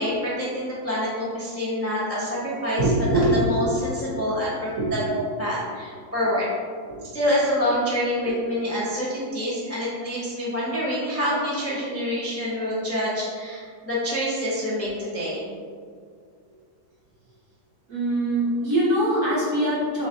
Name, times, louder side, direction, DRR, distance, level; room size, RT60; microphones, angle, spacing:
voice 1, 0.0-2.8 3.4-4.7 5.1-6.4 7.1-15.5, equal, 20° left, -9 dB, 0.4 m, -26 dB
voice 2, 2.8-3.4 4.8-5.2 6.9-7.0 8.3-8.4 17.9-20.1, right 1 dB, 45° right, -8 dB, 1.4 m, -23 dB
4.0 x 3.3 x 3.8 m, 2.1 s
omnidirectional pair, 2.0 m